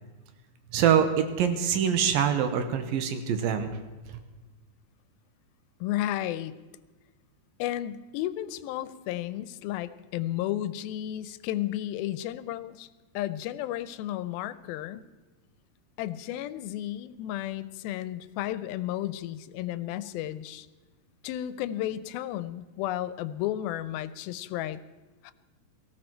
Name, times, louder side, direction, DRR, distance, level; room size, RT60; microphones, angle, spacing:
voice 1, 0.7-3.8, right 8 dB, 80° right, 8 dB, 2.7 m, -24 dB
voice 2, 5.8-6.6 7.6-12.9 13.1-15.0 16.0-20.7 21.2-24.8 25.2-25.3, left 13 dB, 85° left, 14 dB, 2.4 m, -33 dB
19.0 x 15.0 x 4.5 m, 1.3 s
omnidirectional pair, 4.3 m